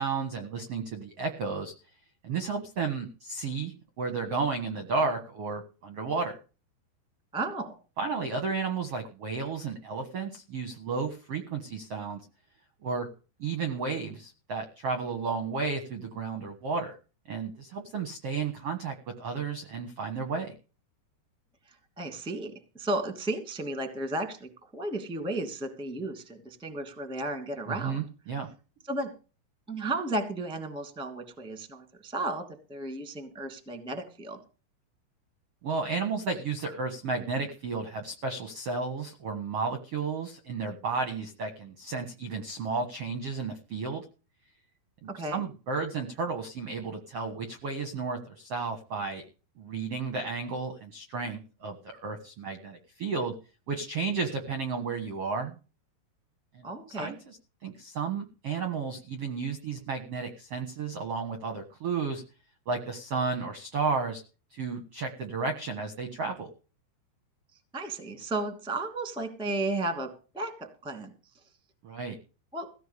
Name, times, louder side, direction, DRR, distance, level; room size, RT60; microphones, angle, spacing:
voice 1, 0.0-1.7 2.2-6.4 8.0-12.2 12.8-13.1 13.4-17.0 17.3-20.5 27.7-28.5 35.6-44.0 45.3-49.2 49.6-53.3 53.7-55.6 56.5-56.7 57.0-57.4 57.6-62.2 62.7-64.2 64.5-66.5 71.8-72.2, right 4 dB, 65° right, 7 dB, 1.5 m, -33 dB
voice 2, 7.3-7.7 21.6-28.0 28.8-29.1 29.7-34.4 45.1-45.4 56.6-57.1 67.7-70.1 70.3-71.1 72.5-72.7, right 2 dB, ahead, 7 dB, 1.2 m, -34 dB
16.0 x 5.7 x 8.4 m, 0.35 s
omnidirectional pair, 5.1 m